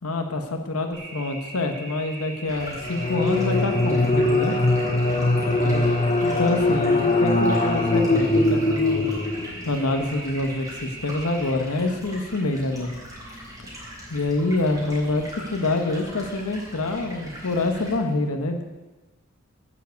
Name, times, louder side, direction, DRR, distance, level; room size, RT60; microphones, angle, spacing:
voice 1, 0.0-4.6 5.6-5.8 6.2-9.1 9.6-12.9 14.1-18.6, left 2 dB, 80° left, 5 dB, 1.1 m, -26 dB
sound 1, 0.9-11.5, right 2 dB, 45° right, 2.8 m, -40 dB
Stream, 2.4-17.9, equal, 15° right, 4.2 m, -41 dB
sound 2, 2.8-9.7, left 2 dB, 30° left, 0.6 m, -21 dB
9.6 x 7.6 x 8.1 m, 1.2 s
head